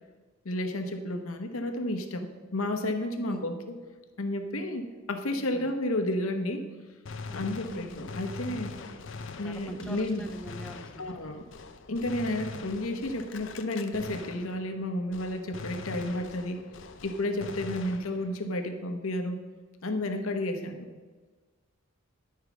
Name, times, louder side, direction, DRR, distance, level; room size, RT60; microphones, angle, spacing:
voice 1, 0.4-3.8 4.2-6.7 7.3-8.8 9.4-10.3 11.0-11.5 11.9-16.6 17.0-19.4 19.8-20.9, left 1 dB, 90° left, 6 dB, 1.1 m, -32 dB
Gunshot gunfire, 7.1-14.9 15.1-18.5, left 4 dB, 65° left, 0.6 m, -43 dB
voice 2, 7.7-8.1 9.4-11.0 20.6-20.7, equal, 5° left, 5 dB, 0.6 m, -43 dB
11.0 x 4.7 x 6.1 m, 1.4 s
head